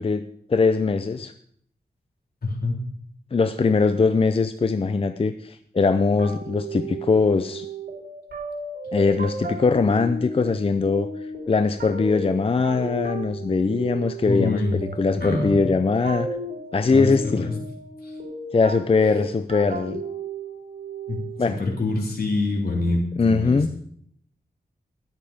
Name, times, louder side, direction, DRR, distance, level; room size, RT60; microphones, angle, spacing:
voice 1, 0.0-1.3 3.3-7.7 8.9-16.3 16.7-17.5 18.5-20.0 21.4-21.6 23.2-23.7, left 4 dB, 35° left, 10 dB, 0.5 m, -21 dB
voice 2, 2.4-2.8 14.2-14.8 15.2-15.6 16.9-17.1 17.4-17.5 18.0-18.1 21.1-21.2 21.5-23.7, left 2 dB, 70° left, -1 dB, 3.6 m, -25 dB
sound 1, 6.2-21.5, right 2 dB, 80° right, 5.8 m, -34 dB
13.5 x 10.0 x 5.1 m, 0.64 s
wide cardioid pair, 115°, 16 cm